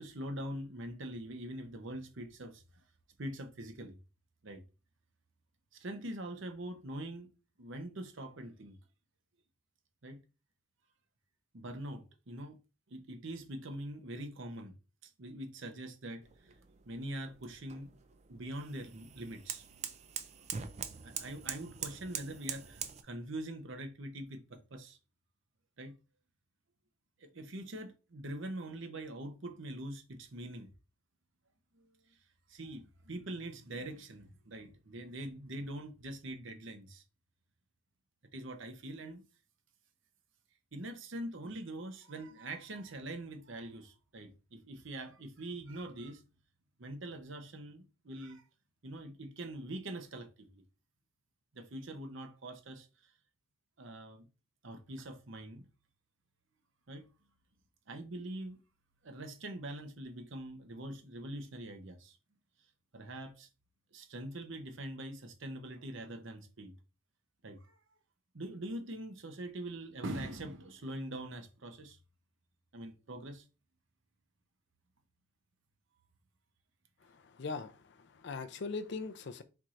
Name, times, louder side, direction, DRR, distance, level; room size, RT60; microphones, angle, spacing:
voice 1, 0.0-2.6 3.2-4.0 4.4-4.6 5.7-7.3 7.6-8.8 10.0-10.2 11.5-12.6 12.9-14.7 15.0-16.6 16.9-17.9 18.3-20.2 21.0-25.0 25.8-25.9 27.2-30.7 31.7-31.9 32.5-37.0 38.3-39.2 40.7-46.2 46.8-48.4 48.8-50.6 51.5-53.1 53.8-54.3 54.6-55.7 56.9-57.0 57.9-58.6 59.0-62.2 62.9-63.5 63.9-66.7 67.4-67.8 68.3-72.0 72.7-73.4, right 1 dB, 60° right, 0.8 m, -43 dB
sound 1, 16.2-23.0, right 8 dB, 30° right, 0.3 m, -44 dB
voice 2, 77.1-79.4, left 4 dB, 55° left, 0.4 m, -41 dB
4.5 x 4.2 x 2.5 m
head